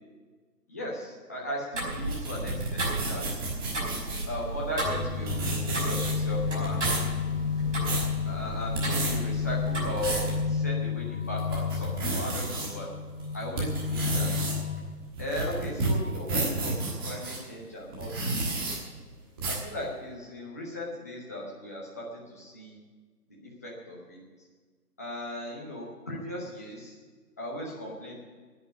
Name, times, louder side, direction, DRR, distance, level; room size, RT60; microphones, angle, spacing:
voice 1, 0.7-3.5 4.3-7.1 8.3-12.9 13.3-14.3 15.2-18.8 19.5-22.8 23.4-24.2 25.0-27.0 27.4-28.2, left 1 dB, 10° left, -4 dB, 0.8 m, -37 dB
Tick-tock, 1.7-10.4, right 2 dB, 45° right, 5.4 m, -34 dB
sound 1, 1.9-4.3 5.0-5.1 5.3-6.3 6.6-7.1 7.6-8.1 8.6-9.1 9.7-10.3 10.8-10.9 11.4-12.7 13.2-17.4 17.9-18.8 19.4-19.7, right 2 dB, 15° right, 1.4 m, -31 dB
sound 2, 4.8-14.8, left 6 dB, 45° left, 3.3 m, -32 dB
9.9 x 9.5 x 9.6 m, 1.4 s
figure-of-eight pair, 145°, 49 cm